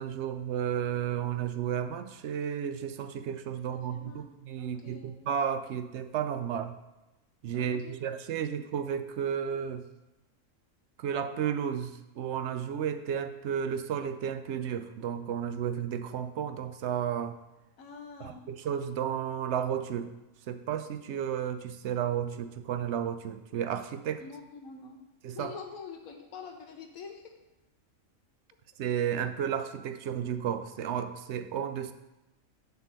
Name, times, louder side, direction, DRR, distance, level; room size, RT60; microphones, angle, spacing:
voice 1, 0.0-6.7 7.4-9.9 11.0-17.4 18.2-20.1 20.5-24.2 25.2-25.6 28.8-31.9, right 8 dB, 65° right, 9 dB, 0.8 m, -33 dB
voice 2, 3.7-5.3 7.5-8.0 8.3-8.5 17.8-18.4 24.2-25.0 25.3-27.3, left 5 dB, 85° left, 3 dB, 1.3 m, -46 dB
6.7 x 4.7 x 6.6 m, 1.0 s
omnidirectional pair, 1.4 m